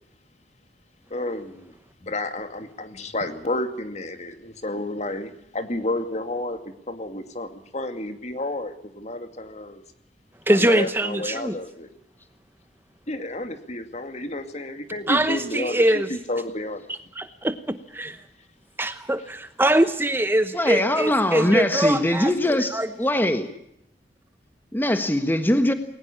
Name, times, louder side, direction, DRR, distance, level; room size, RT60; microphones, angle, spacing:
voice 1, 1.1-1.7 2.0-6.6 6.9-9.8 10.5-11.9 13.1-16.8, left 1 dB, 40° left, 8 dB, 2.4 m, -31 dB
voice 2, 10.5-11.6 15.1-16.1 16.9-18.1 18.8-22.9, right 1 dB, 15° right, 10 dB, 0.9 m, -23 dB
voice 3, 20.5-23.5 24.7-25.7, left 1 dB, 10° left, 8 dB, 1.4 m, -22 dB
20.5 x 19.5 x 8.5 m, 0.77 s
head